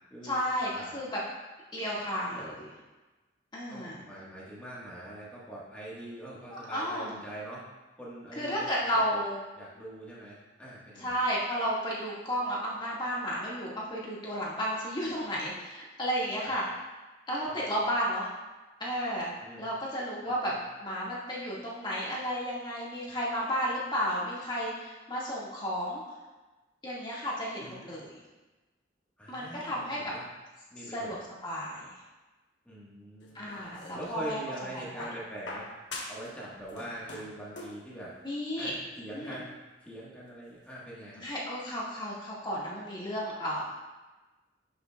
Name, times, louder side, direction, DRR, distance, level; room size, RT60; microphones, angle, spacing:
voice 1, 0.2-1.2 1.7-2.7 3.5-4.0 6.5-7.1 8.3-9.4 11.0-16.6 17.3-18.3 18.8-19.3 19.6-20.5 20.8-26.0 26.8-28.2 29.3-30.0 30.9-31.2 31.4-31.8 33.3-34.4 34.7-35.1 38.2-38.7 39.1-39.4 41.2-43.6, equal, 25° left, -6 dB, 1.7 m, -33 dB
voice 2, 3.7-7.6 8.0-9.2 9.5-11.2 16.4-16.6 17.5-17.7 19.4-19.7 20.2-20.6 27.6-27.8 29.2-30.3 30.7-31.1 32.6-33.6 33.9-35.7 36.1-38.1 38.6-39.5 39.8-41.2, right 1 dB, 5° left, -7 dB, 1.3 m, -43 dB
sound 1, 33.2-34.2 35.0-36.3 36.6-37.9 38.9-39.0, left 2 dB, 75° left, 1.2 m, -43 dB
11.0 x 5.8 x 2.3 m, 1.2 s
head